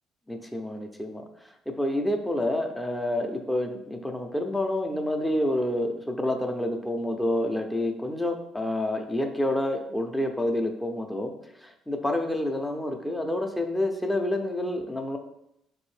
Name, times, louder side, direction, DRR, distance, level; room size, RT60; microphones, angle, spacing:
voice 1, 0.3-11.3 11.6-15.2, left 1 dB, 5° left, 4 dB, 0.5 m, -28 dB
3.5 x 2.6 x 3.2 m, 0.79 s
cardioid pair, 85°, 0 cm